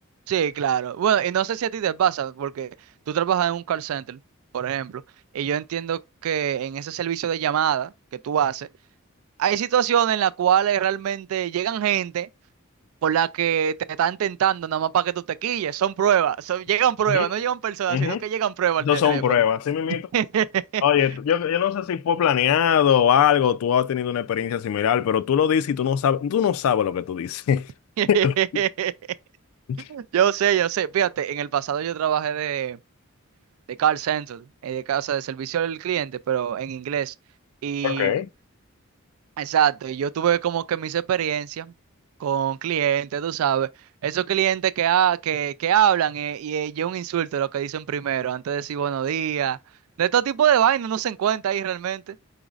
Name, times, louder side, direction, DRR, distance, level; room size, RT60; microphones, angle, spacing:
voice 1, 0.3-2.7 3.1-4.2 4.5-5.0 5.3-7.9 8.2-8.7 9.4-12.3 13.0-19.2 20.1-20.8 28.0-28.9 29.9-32.8 33.8-37.1 37.6-38.2 39.4-41.7 42.2-43.7 44.0-49.6 50.0-52.2, right 9 dB, 75° right, 0.3 m, -24 dB
voice 2, 17.9-18.2 18.8-20.0 20.8-27.7 28.2-28.3 29.7-29.8 37.8-38.3, left 8 dB, 70° left, 0.3 m, -21 dB
5.1 x 3.9 x 2.3 m
head